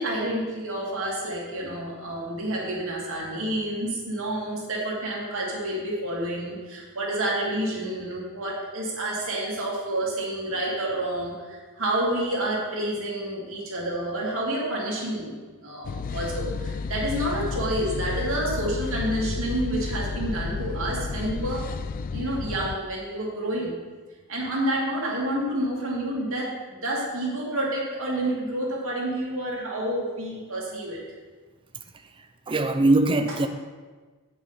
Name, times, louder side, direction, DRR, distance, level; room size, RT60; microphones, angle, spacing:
voice 1, 0.0-15.3 15.6-21.6 22.1-23.7 24.3-31.0 33.3-33.4, right 1 dB, 65° right, 2.6 m, -29 dB
sound 1, 15.8-22.7, left 4 dB, 40° left, 0.3 m, -31 dB
voice 2, 32.5-33.5, right 2 dB, 25° right, 0.5 m, -21 dB
9.1 x 5.9 x 5.6 m
head